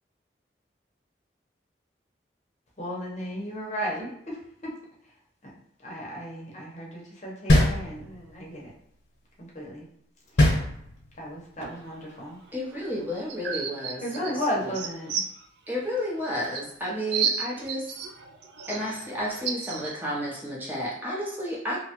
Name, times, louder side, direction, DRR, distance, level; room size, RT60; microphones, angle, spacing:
voice 1, 2.8-4.3 5.8-8.7 9.4-9.9 11.2-12.4 14.0-15.1, equal, 40° left, -3 dB, 0.7 m, -34 dB
sound 1, 7.5-8.4 10.4-11.3, left 1 dB, 90° left, 0.8 m, -21 dB
voice 2, 11.6-12.3 13.4-13.9 14.2-14.4 14.7-15.5 17.1-19.9, right 6 dB, 70° right, 1 dB, 0.4 m, -33 dB
voice 3, 12.5-14.8 15.7-17.8 18.7-21.8, equal, 10° right, -5 dB, 0.6 m, -32 dB
2.9 x 2.2 x 2.9 m, 0.73 s
head